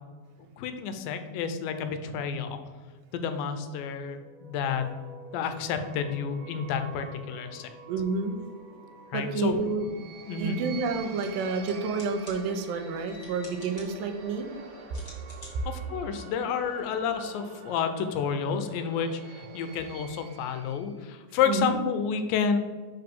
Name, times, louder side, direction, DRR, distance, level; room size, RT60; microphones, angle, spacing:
voice 1, 0.6-2.6 3.1-4.9 5.3-7.7 9.1-9.5 10.3-10.6 15.7-22.6, left 7 dB, 85° left, 8 dB, 2.3 m, -30 dB
sound 1, 4.2-21.0, right 4 dB, 65° right, 2.2 m, -47 dB
voice 2, 7.9-8.4 9.1-9.9 10.4-14.5 21.5-21.7, right 4 dB, 85° right, 6 dB, 2.3 m, -29 dB
sound 2, 11.0-17.1, left 1 dB, 55° left, 0.5 m, -53 dB
5.8 x 5.3 x 3.7 m, 1.5 s
omnidirectional pair, 4.0 m